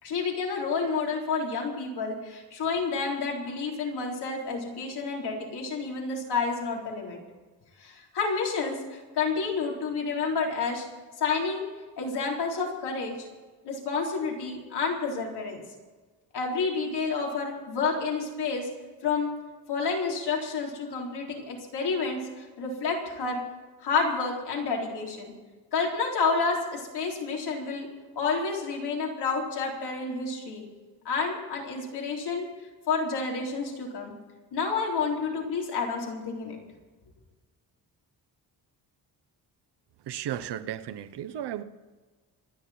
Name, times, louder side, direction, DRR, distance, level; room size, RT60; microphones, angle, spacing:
voice 1, 0.0-7.2 7.8-10.9 11.2-11.6 12.0-13.3 13.6-15.6 16.3-18.7 19.0-19.3 19.7-23.4 23.8-25.3 25.7-27.9 28.2-30.6 31.0-32.5 32.9-34.1 34.5-36.6, left 4 dB, 75° left, -1 dB, 4.0 m, -29 dB
voice 2, 40.1-41.6, right 11 dB, 85° right, 12 dB, 0.9 m, -34 dB
27.0 x 10.0 x 4.4 m, 1.3 s
wide cardioid pair, 175°, 40 cm